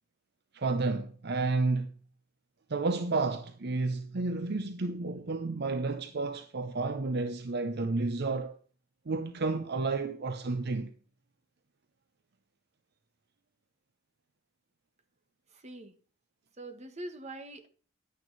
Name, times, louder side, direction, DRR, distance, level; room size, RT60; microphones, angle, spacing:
voice 1, 0.5-1.9 2.7-8.6 9.1-10.9, right 3 dB, 55° right, 0.7 m, -31 dB
voice 2, 15.5-15.9 16.6-17.7, right 1 dB, 35° right, 1.4 m, -43 dB
11.0 x 9.2 x 4.0 m
head